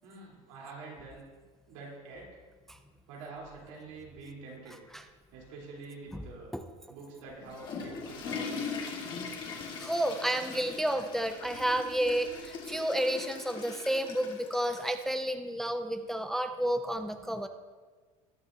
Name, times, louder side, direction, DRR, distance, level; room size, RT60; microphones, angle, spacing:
voice 1, 0.0-1.3 1.7-2.3 3.1-4.8 5.3-6.5 6.9-8.7, right 3 dB, 80° right, -4 dB, 3.6 m, -46 dB
Water / Toilet flush, 7.3-15.1, left 5 dB, 30° left, 1.6 m, -40 dB
voice 2, 9.8-17.5, right 1 dB, ahead, 7 dB, 0.3 m, -31 dB
20.0 x 7.1 x 2.7 m, 1.4 s
cardioid pair, 165°, 16 cm